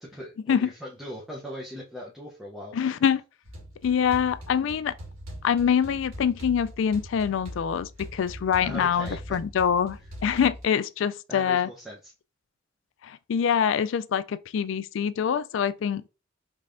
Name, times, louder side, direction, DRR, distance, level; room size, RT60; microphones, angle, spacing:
voice 1, 0.0-2.7 8.6-9.4 11.3-12.1, equal, ahead, 0.7 m, -39 dB
voice 2, 2.7-3.2 3.8-4.9 5.4-11.7 13.0-16.1, left 7 dB, 75° left, 0.3 m, -25 dB
sound 1, 3.4-10.6, equal, 90° right, 2.1 m, -42 dB
5.3 x 3.3 x 2.5 m
head